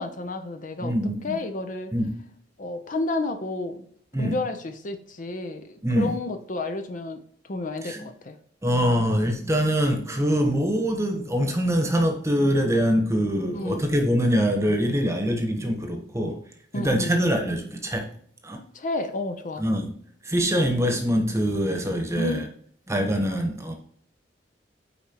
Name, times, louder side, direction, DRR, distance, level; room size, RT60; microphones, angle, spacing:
voice 1, 0.0-0.9 1.2-1.9 2.6-3.9 4.2-8.4 13.5-13.8 16.7-17.2 18.7-19.6 22.2-22.5, left 2 dB, 45° left, 7 dB, 0.6 m, -31 dB
voice 2, 0.8-1.4 1.9-2.1 4.1-4.4 5.8-6.2 7.8-8.0 8.6-16.4 16.7-18.1 18.4-18.6 19.6-19.9 20.2-22.5 22.9-23.7, equal, 15° right, 4 dB, 1.1 m, -24 dB
9.0 x 4.3 x 2.9 m, 0.62 s
head